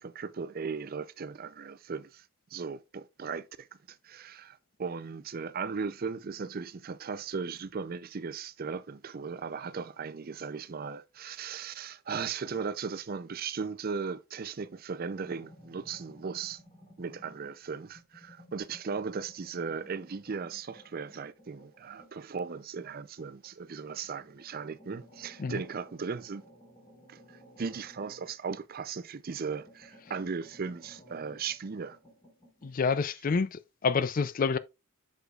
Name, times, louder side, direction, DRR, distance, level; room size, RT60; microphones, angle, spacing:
voice 1, 0.0-2.2 2.5-16.6 17.0-26.4 27.1-32.0, right 5 dB, 45° right, 0.5 m, -37 dB
sound 1, 15.2-17.6 17.9-23.6 24.0-29.1 29.4-32.8, equal, 25° left, 4.3 m, -57 dB
voice 2, 32.6-34.6, left 5 dB, 40° left, 0.4 m, -28 dB
8.1 x 6.4 x 2.4 m
head